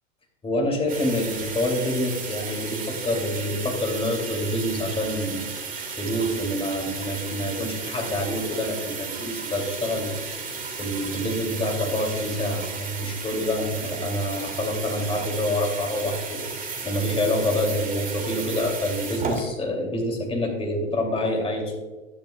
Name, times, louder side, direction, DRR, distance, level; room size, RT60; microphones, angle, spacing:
voice 1, 0.4-5.5 6.0-10.4 10.8-21.8, left 1 dB, 15° left, 1 dB, 2.6 m, -27 dB
sound 1, 0.9-19.4, right 4 dB, 20° right, 1.9 m, -34 dB
12.0 x 11.0 x 2.3 m, 1.3 s
hypercardioid pair, 115°, 38 cm